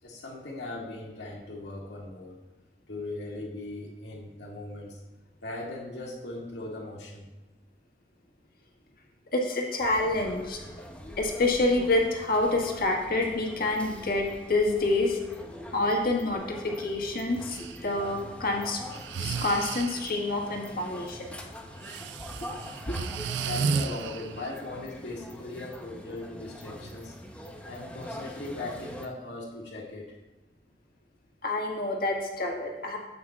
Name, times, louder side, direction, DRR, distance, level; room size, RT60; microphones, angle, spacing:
voice 1, 0.0-2.4 2.9-5.0 5.4-7.3 23.4-27.1 27.6-30.1, left 2 dB, 75° left, -3 dB, 1.9 m, -39 dB
voice 2, 9.3-10.6 11.2-15.2 15.7-18.8 19.2-21.4 22.4-22.5 22.9-23.0 31.4-33.0, left 2 dB, 60° left, 0 dB, 1.6 m, -27 dB
sound 1, 9.8-29.1, equal, 10° left, 0.8 m, -44 dB
Breathing, 17.5-17.8 18.9-20.2 21.8-24.5, right 5 dB, 80° right, 0.4 m, -33 dB
13.0 x 8.5 x 2.4 m, 1.1 s
head